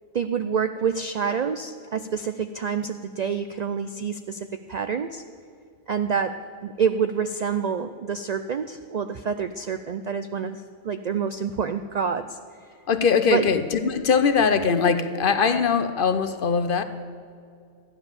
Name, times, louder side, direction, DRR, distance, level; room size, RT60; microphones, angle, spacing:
voice 1, 0.1-5.2 5.9-6.3 6.6-12.4 13.3-13.5, right 6 dB, 85° right, 9 dB, 0.3 m, -27 dB
voice 2, 12.9-16.8, left 6 dB, 55° left, 10 dB, 0.7 m, -21 dB
13.5 x 9.7 x 7.1 m, 2.3 s
omnidirectional pair, 1.3 m